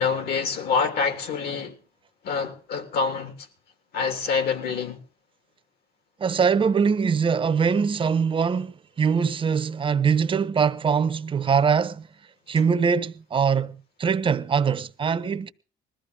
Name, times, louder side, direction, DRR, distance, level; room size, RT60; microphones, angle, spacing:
voice 1, 0.0-1.8 2.2-3.5 3.9-5.0, left 5 dB, 65° left, 3.2 m, -26 dB
voice 2, 6.2-12.1 12.5-15.5, right 6 dB, 30° right, 0.9 m, -23 dB
21.0 x 14.0 x 3.8 m
cardioid pair, 110°, 17 cm